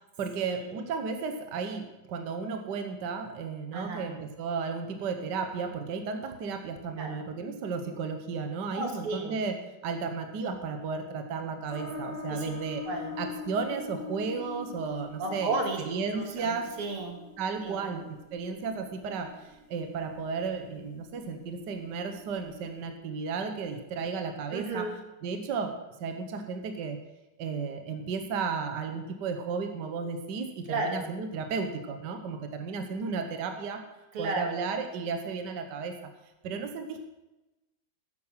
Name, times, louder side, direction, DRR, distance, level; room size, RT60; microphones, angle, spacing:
voice 1, 0.2-12.8 13.2-15.6 15.9-16.7 17.4-18.0 18.3-24.9 25.2-27.0 27.4-33.8 34.2-35.9 36.4-37.0, right 5 dB, 55° right, 6 dB, 1.6 m, -34 dB
voice 2, 3.7-4.1 7.0-7.2 8.7-9.4 12.3-12.5 12.9-13.2 15.2-17.2 17.6-17.9 24.5-25.0 30.7-31.1 34.1-34.6, right 2 dB, 85° right, 3 dB, 2.7 m, -33 dB
sound 1, 11.7-22.8, left 4 dB, 25° left, 2.3 m, -44 dB
12.5 x 9.8 x 5.7 m, 1.0 s
omnidirectional pair, 2.4 m